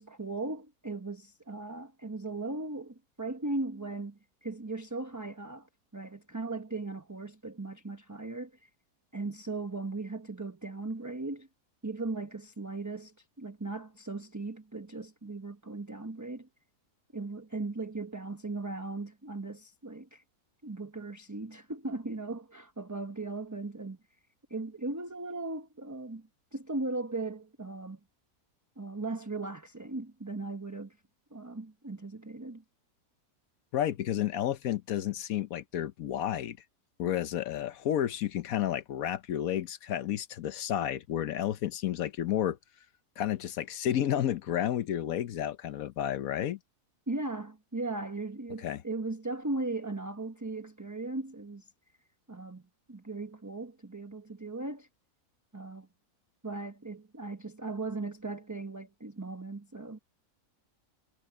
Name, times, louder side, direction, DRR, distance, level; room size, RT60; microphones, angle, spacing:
voice 1, 0.0-8.7 9.1-11.5 11.8-16.5 17.1-20.2 20.6-24.0 24.5-28.0 28.8-31.0 31.3-32.6 47.1-51.7 52.3-52.6 52.9-54.9 55.5-55.9 56.4-60.0, right 3 dB, 15° right, 0.9 m, -38 dB
voice 2, 33.7-36.6 37.0-42.6 43.2-46.6 48.6-48.8, left 11 dB, 70° left, 1.1 m, -31 dB
omnidirectional pair, 1.6 m